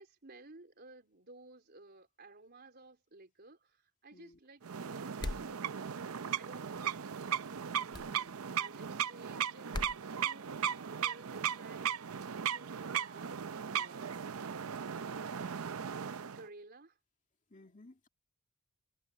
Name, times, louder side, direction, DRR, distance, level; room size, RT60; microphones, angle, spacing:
voice 1, 0.0-5.9 6.4-7.1 8.5-13.3 13.7-14.2 14.9-15.6 16.3-17.0, right 2 dB, 45° right, 3.9 m, -56 dB
sound 1, 4.6-16.4, right 8 dB, 70° right, 0.6 m, -37 dB
sound 2, 5.2-5.5 7.9-8.1 9.7-10.0, left 2 dB, 20° left, 0.4 m, -38 dB
voice 2, 7.9-8.7 17.5-18.1, left 2 dB, 35° left, 2.3 m, -59 dB
head